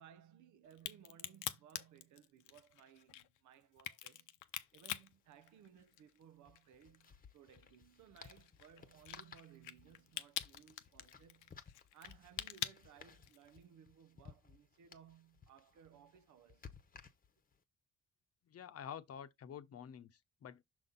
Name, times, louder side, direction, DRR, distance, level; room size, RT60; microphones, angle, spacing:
voice 1, 0.0-4.3 4.7-11.6 11.9-16.7, right 9 dB, 75° right, 0.8 m, -62 dB
Crack, 0.7-6.2 6.6-13.6, left 13 dB, 85° left, 0.7 m, -46 dB
sound 1, 4.4-4.5 4.7-4.9 6.4-17.6, left 6 dB, 30° left, 0.9 m, -59 dB
voice 2, 18.5-20.6, left 8 dB, 50° left, 0.8 m, -49 dB
6.3 x 4.1 x 3.9 m
cardioid pair, 90°, 30 cm